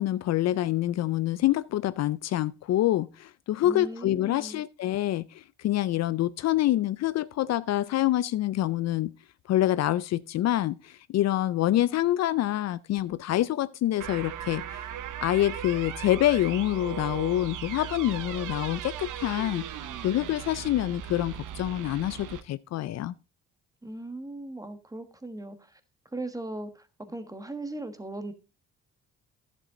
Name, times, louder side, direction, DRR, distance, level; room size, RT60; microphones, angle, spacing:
voice 1, 0.0-9.1 9.5-14.9 15.2-19.7 20.0-23.1, left 14 dB, 60° left, 0.4 m, -26 dB
voice 2, 3.6-4.6 23.8-25.8 26.1-28.3, right 2 dB, 10° right, 1.3 m, -38 dB
sound 1, 14.0-22.4, right 10 dB, 85° right, 0.9 m, -38 dB
11.0 x 7.7 x 3.7 m
cardioid pair, 90°, 30 cm